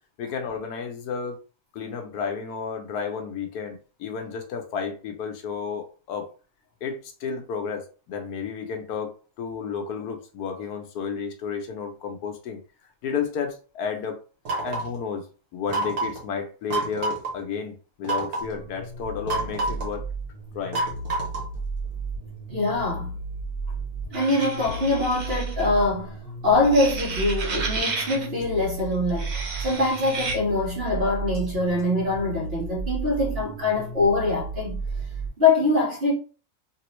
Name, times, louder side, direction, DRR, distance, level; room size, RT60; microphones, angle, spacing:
voice 1, 0.2-1.4 1.7-6.3 6.8-9.1 9.4-12.6 13.0-14.2 14.6-15.2 15.5-20.0 20.5-20.8, left 6 dB, 75° left, 1.2 m, -32 dB
sound 1, 14.5-15.0 15.7-16.2 16.7-17.3 18.0-18.5 19.3-19.9 20.7-21.6, right 3 dB, 65° right, 1.5 m, -28 dB
sound 2, 18.4-35.3, right 2 dB, 25° left, 1.8 m, -34 dB
voice 2, 22.5-23.1 24.1-26.2 26.4-34.8 35.4-36.1, left 2 dB, 40° right, 1.7 m, -23 dB
sound 3, 24.1-25.7 26.6-28.3 29.1-30.4, right 4 dB, 90° right, 0.4 m, -32 dB
3.3 x 3.0 x 3.1 m
omnidirectional pair, 1.7 m